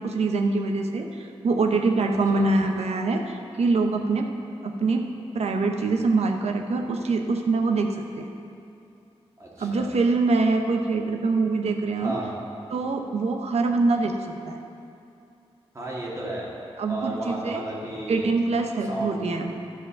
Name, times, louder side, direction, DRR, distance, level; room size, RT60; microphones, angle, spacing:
voice 1, 0.0-4.3 4.6-5.1 5.3-7.9 8.2-8.3 9.6-12.2 12.7-14.1 14.5-14.6 16.8-17.6 18.1-19.5, right 3 dB, 80° right, 4 dB, 0.8 m, -24 dB
voice 2, 2.1-2.4 9.4-9.9 12.0-12.3 15.7-16.5 16.9-18.3 18.9-19.3, right 1 dB, 30° right, -5 dB, 2.0 m, -33 dB
12.5 x 5.1 x 6.0 m, 2.6 s
wide cardioid pair, 130°, 11 cm